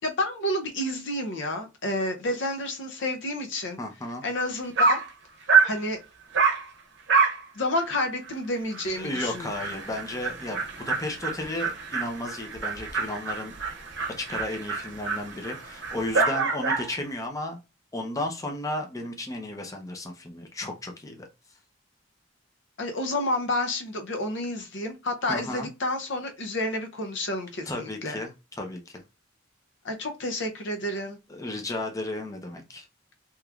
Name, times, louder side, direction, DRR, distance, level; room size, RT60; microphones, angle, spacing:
voice 1, 0.0-3.8 4.2-5.0 5.6-6.0 7.5-9.8 22.8-28.2 29.8-31.2, left 1 dB, 70° left, 0.6 m, -30 dB
voice 2, 3.8-4.2 8.9-13.6 14.2-17.6 17.9-21.3 25.3-25.7 27.7-28.3 28.6-29.0 31.3-32.9, left 1 dB, 20° left, 0.6 m, -34 dB
Dog, 4.4-4.5 4.8-5.1 5.5-5.8 6.3-6.6 7.1-7.4 7.8-7.9 8.3-8.4 8.7-8.8 9.1-16.9, right 5 dB, 65° right, 0.7 m, -26 dB
3.5 x 2.9 x 2.4 m
head